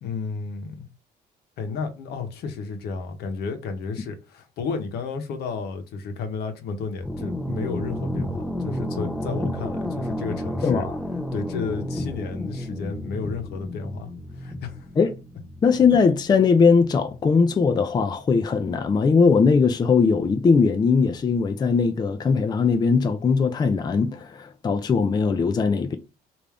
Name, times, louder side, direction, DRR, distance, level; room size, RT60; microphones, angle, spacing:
voice 1, 0.0-0.9 1.6-10.9 11.3-14.9, left 4 dB, 75° left, 0.9 m, -32 dB
sound 1, 7.0-18.5, left 1 dB, 10° left, 1.1 m, -32 dB
voice 2, 10.6-11.0 15.0-15.1 15.6-26.0, left 5 dB, 25° left, 0.4 m, -20 dB
3.4 x 2.6 x 3.4 m
cardioid pair, 110°, 17 cm